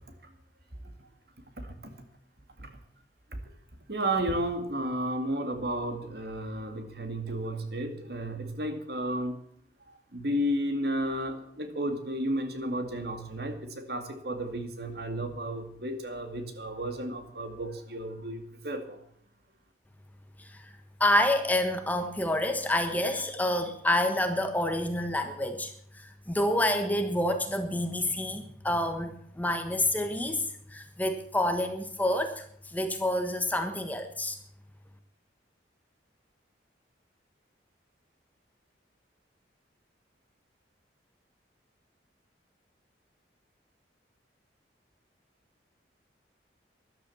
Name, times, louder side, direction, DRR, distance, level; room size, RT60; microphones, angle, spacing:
voice 1, 1.6-1.9 2.6-2.7 3.3-3.4 3.9-9.4 10.1-19.0, right 1 dB, 55° right, 7 dB, 2.3 m, -33 dB
voice 2, 21.0-25.7 26.0-30.4 30.7-32.4 32.7-34.4, left 1 dB, 10° left, 6 dB, 1.3 m, -28 dB
13.5 x 12.0 x 7.2 m, 0.67 s
head